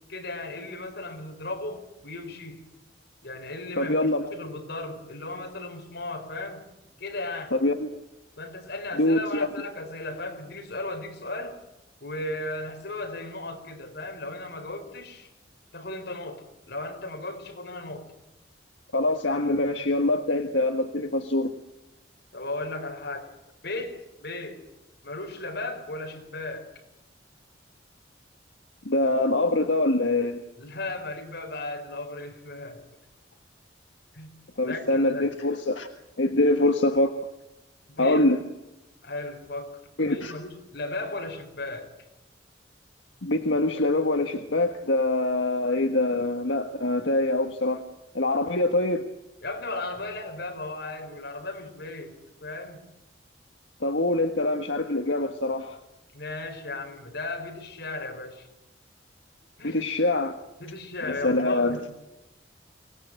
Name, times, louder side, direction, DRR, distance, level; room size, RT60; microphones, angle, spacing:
voice 1, 0.1-2.7 3.2-4.0 4.3-6.6 7.0-7.5 8.4-11.6 12.0-15.3 15.7-18.0 22.3-23.3 23.6-24.6 25.0-26.7 30.6-32.8 34.1-34.3 34.6-35.3 37.9-38.2 39.0-41.9 49.4-52.1 52.4-52.9 56.1-58.5 59.6-59.8 60.6-61.9, left 2 dB, 60° left, 4 dB, 4.9 m, -36 dB
voice 2, 3.8-4.3 7.5-8.0 9.0-9.5 18.9-21.6 28.8-30.4 34.6-35.9 36.2-37.2 38.0-38.4 40.0-40.4 43.2-47.8 48.1-49.0 53.8-55.8 59.6-60.4 61.0-61.8, left 2 dB, 85° left, 6 dB, 1.5 m, -24 dB
25.0 x 19.0 x 9.1 m, 0.94 s
head